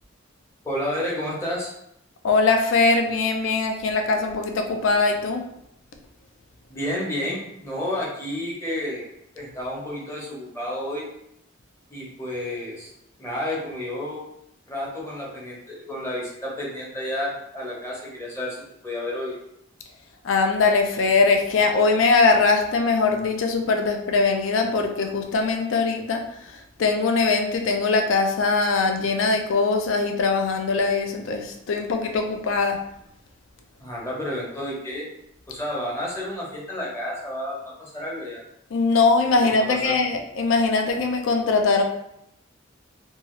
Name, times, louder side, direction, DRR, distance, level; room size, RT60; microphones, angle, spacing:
voice 1, 0.6-1.7 6.7-9.1 9.3-11.1 11.9-12.9 13.2-14.2 14.7-19.4 33.8-35.1 35.5-38.4 39.7-40.0, left 1 dB, 15° left, -5 dB, 0.8 m, -31 dB
voice 2, 2.2-5.4 20.2-26.2 26.8-32.8 38.7-41.8, left 4 dB, 80° left, 4 dB, 0.4 m, -21 dB
2.7 x 2.3 x 3.1 m, 0.77 s
head